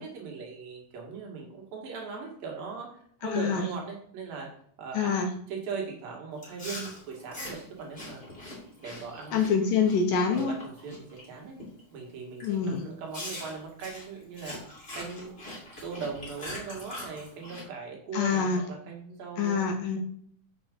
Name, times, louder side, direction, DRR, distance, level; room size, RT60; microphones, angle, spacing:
voice 1, 0.0-2.9 3.2-4.5 4.8-8.2 8.8-9.5 10.3-11.6 11.9-14.6 14.9-15.3 15.8-19.6, right 5 dB, 65° right, 0 dB, 3.5 m, -39 dB
voice 2, 3.2-3.7 5.0-5.3 9.3-10.6 12.4-12.8 18.1-18.6 19.4-20.0, left 5 dB, 70° left, 3 dB, 2.3 m, -26 dB
Chewing mastication, 6.4-11.2 11.6-11.9 12.4-12.5 13.1-17.6, left 1 dB, 15° left, 2.6 m, -42 dB
8.1 x 6.1 x 5.2 m, 0.63 s
omnidirectional pair, 4.5 m